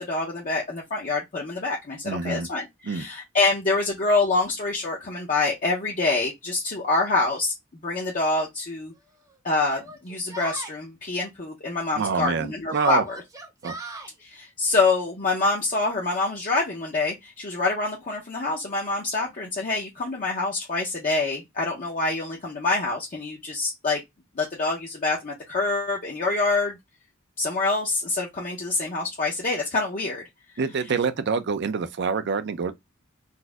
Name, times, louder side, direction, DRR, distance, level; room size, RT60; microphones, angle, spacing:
voice 1, 0.1-7.5 7.8-8.9 9.4-13.2 14.2-24.0 24.4-26.8 27.4-30.2, left 3 dB, 40° left, 0.7 m, -26 dB
voice 2, 2.0-2.5 2.8-3.0 11.9-13.0 13.6-13.8 30.6-32.7, right 5 dB, 60° right, 0.5 m, -26 dB
Yell, 7.3-7.4 8.4-8.5 9.6-10.8 12.7-14.1, right 2 dB, 15° right, 0.7 m, -39 dB
4.0 x 2.6 x 2.3 m
head